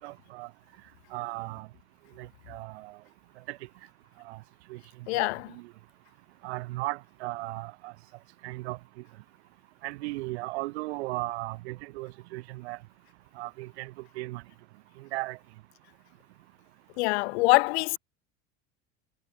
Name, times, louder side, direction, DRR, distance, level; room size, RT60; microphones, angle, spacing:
voice 1, 0.0-0.5 1.1-1.7 2.2-2.9 3.5-3.6 4.3-4.4 4.7-4.8 5.1-5.3 6.4-7.9 8.4-8.8 9.8-12.8 13.4-13.9 14.2-14.4 15.1-15.4, right 21 dB, 90° right, 6.8 m, -36 dB
voice 2, 5.1-5.5 17.0-18.0, left 24 dB, 90° left, 0.8 m, -24 dB
cardioid pair, 165°, 32 cm